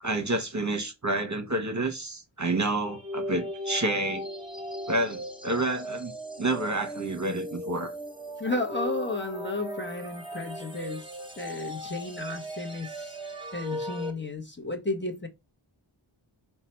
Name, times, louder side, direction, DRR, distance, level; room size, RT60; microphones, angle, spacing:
voice 1, 0.0-4.3 4.9-6.1 6.4-7.9, right 2 dB, 35° right, 0.9 m, -29 dB
sound 1, 2.8-14.1, equal, 10° right, 1.2 m, -37 dB
voice 2, 8.4-13.2 13.5-15.3, left 2 dB, 25° left, 1.0 m, -33 dB
4.8 x 2.3 x 4.3 m
wide cardioid pair, 60°, 48 cm